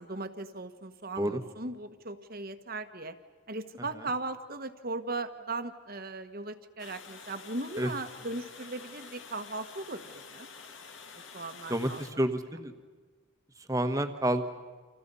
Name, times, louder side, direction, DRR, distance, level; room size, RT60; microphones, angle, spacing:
voice 1, 0.0-3.1 3.5-10.5 11.3-12.0, right 2 dB, 45° right, 9 dB, 1.4 m, -38 dB
Water, 6.8-12.1, left 5 dB, 60° left, 2.2 m, -48 dB
voice 2, 11.7-12.7 13.7-14.4, right 1 dB, 15° right, 8 dB, 1.4 m, -29 dB
30.0 x 27.5 x 5.6 m, 1.4 s
head